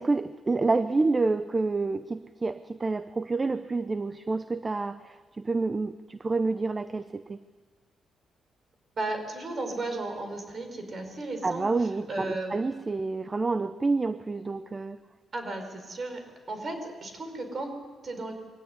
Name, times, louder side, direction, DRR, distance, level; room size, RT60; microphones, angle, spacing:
voice 1, 0.0-7.4 11.4-15.0, right 3 dB, 25° right, 12 dB, 0.7 m, -28 dB
voice 2, 8.9-12.6 15.3-18.3, right 2 dB, 40° right, 6 dB, 5.1 m, -35 dB
23.0 x 16.5 x 9.8 m, 1.4 s
cardioid pair, 100°, 0 cm